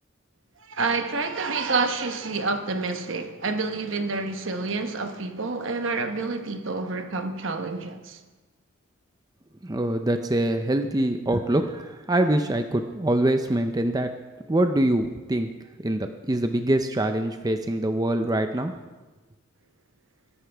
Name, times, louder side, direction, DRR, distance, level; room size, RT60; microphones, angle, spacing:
voice 1, 0.7-8.2, right 3 dB, 65° right, 1.1 m, -28 dB
voice 2, 9.6-14.1 14.5-15.5 15.8-18.7, right 1 dB, 20° right, 0.5 m, -24 dB
22.0 x 11.0 x 3.4 m
head